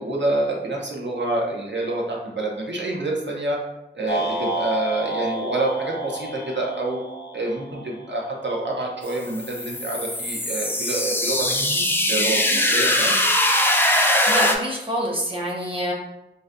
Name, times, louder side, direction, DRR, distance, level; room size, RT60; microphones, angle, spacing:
voice 1, 0.0-3.6 3.9-7.0 7.3-13.1, right 2 dB, 75° right, -2 dB, 0.7 m, -27 dB
sound 1, 4.1-8.4, right 1 dB, 70° left, 0.6 m, -30 dB
sound 2, 9.1-14.6, left 1 dB, 10° left, 0.4 m, -21 dB
voice 2, 14.3-15.9, equal, 30° right, -2 dB, 0.8 m, -26 dB
3.9 x 2.2 x 2.5 m, 0.93 s
wide cardioid pair, 45°, 19 cm